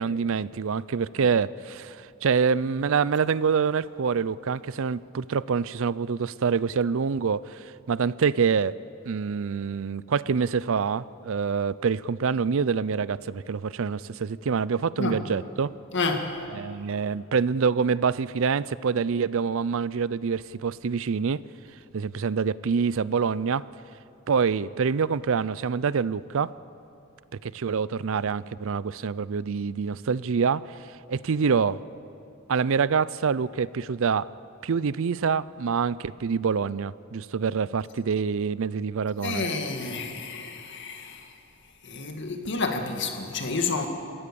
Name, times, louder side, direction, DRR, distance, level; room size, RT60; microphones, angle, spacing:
voice 1, 0.0-7.6 7.9-8.8 9.1-15.7 16.5-21.4 21.9-23.7 24.3-26.5 27.4-30.6 31.1-31.8 32.5-34.3 34.6-39.4, right 6 dB, 65° right, 0.5 m, -26 dB
voice 2, 15.9-16.4 39.2-41.3 41.8-43.9, left 3 dB, 55° left, 2.1 m, -30 dB
27.5 x 16.0 x 7.0 m
head